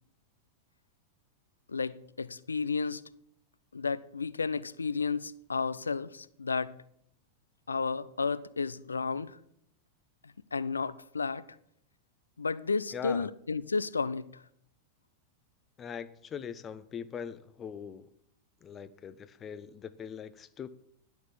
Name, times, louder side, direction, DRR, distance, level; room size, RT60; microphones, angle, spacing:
voice 1, 1.7-3.0 3.7-6.7 7.7-9.4 10.5-11.4 12.4-14.4, left 4 dB, 75° left, 0.4 m, -32 dB
voice 2, 12.9-13.3 15.8-18.1 18.6-20.7, left 7 dB, 25° left, 0.5 m, -41 dB
11.0 x 6.1 x 7.1 m
figure-of-eight pair, 90°, 0 cm